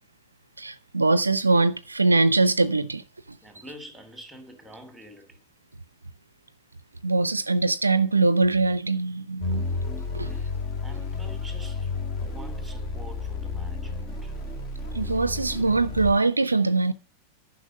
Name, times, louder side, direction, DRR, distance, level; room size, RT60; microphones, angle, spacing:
voice 1, 0.6-3.0 7.0-9.7 10.1-10.3 14.9-16.9, right 3 dB, 80° right, 0.5 m, -22 dB
voice 2, 3.4-5.4 10.2-10.5 10.8-14.3, equal, ahead, 3.0 m, -47 dB
sound 1, 9.4-16.1, left 3 dB, 30° left, 1.8 m, -32 dB
10.5 x 5.8 x 6.3 m
figure-of-eight pair, 90°, 0 cm